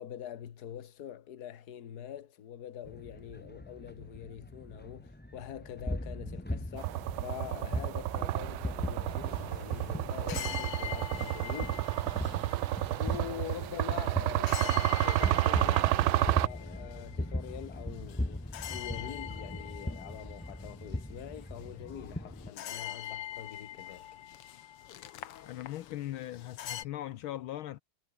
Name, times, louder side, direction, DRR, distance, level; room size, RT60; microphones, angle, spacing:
voice 1, 0.0-11.8 12.6-24.1, left 10 dB, 50° left, 1.7 m, -44 dB
sound 1, 2.8-22.5, left 1 dB, 5° left, 1.1 m, -40 dB
sound 2, 6.8-16.5, right 17 dB, 75° right, 1.3 m, -30 dB
sound 3, 9.1-26.8, left 12 dB, 90° left, 2.1 m, -44 dB
voice 2, 25.5-27.8, left 13 dB, 75° left, 1.5 m, -39 dB
omnidirectional pair, 2.4 m